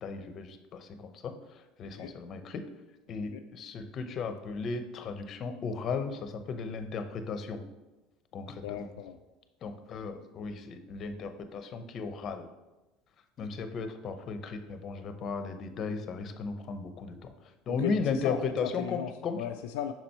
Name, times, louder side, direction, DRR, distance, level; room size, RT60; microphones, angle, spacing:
voice 1, 0.0-2.6 3.1-7.6 8.3-8.9 9.6-12.5 13.4-19.4, left 4 dB, 45° left, 8 dB, 0.7 m, -36 dB
voice 2, 8.6-9.2 17.7-19.1 19.4-19.9, left 9 dB, 80° left, 5 dB, 0.3 m, -36 dB
5.9 x 4.3 x 4.3 m, 1.1 s
supercardioid pair, 90°, 0 cm